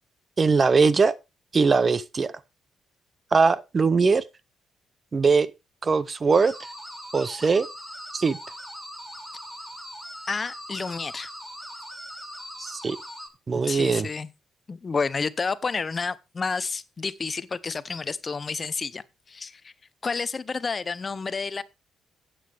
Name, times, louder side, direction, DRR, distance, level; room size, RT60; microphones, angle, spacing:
voice 1, 0.4-1.1 1.5-2.3 3.3-4.2 5.1-5.5 5.8-6.5 7.1-7.7 8.1-8.4 12.6-13.0 13.5-14.1, right 4 dB, 35° right, 0.7 m, -21 dB
sound 1, 6.3-13.3, equal, 5° right, 2.4 m, -40 dB
voice 2, 10.3-11.3 13.7-14.3 14.7-19.7 20.0-21.6, left 4 dB, 35° left, 0.7 m, -30 dB
12.5 x 8.6 x 3.4 m
cardioid pair, 90°, 0 cm